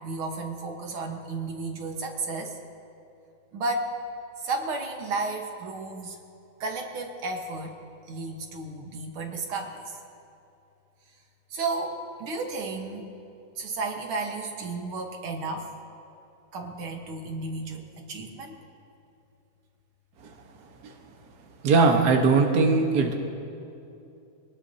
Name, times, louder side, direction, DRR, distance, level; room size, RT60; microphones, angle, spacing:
voice 1, 0.0-2.6 3.5-3.9 4.4-6.2 6.6-7.8 8.1-10.0 11.5-13.1 13.6-15.7 16.5-18.6, right 3 dB, 80° right, 2 dB, 2.2 m, -33 dB
voice 2, 21.6-23.1, right 4 dB, 50° right, 2 dB, 1.6 m, -20 dB
24.0 x 18.5 x 2.8 m, 2.7 s
omnidirectional pair, 2.3 m